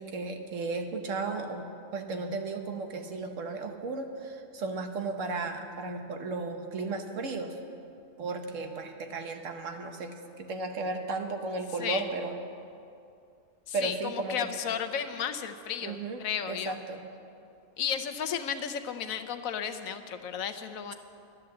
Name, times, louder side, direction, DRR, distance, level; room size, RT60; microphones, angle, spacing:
voice 1, 0.0-7.5 8.2-12.4 13.7-14.5 15.8-16.2 16.5-17.0, right 3 dB, 65° right, 5 dB, 1.3 m, -35 dB
voice 2, 13.7-16.8 17.8-20.9, left 8 dB, 80° left, 8 dB, 1.1 m, -33 dB
11.5 x 10.5 x 7.6 m, 2.5 s
omnidirectional pair, 1.4 m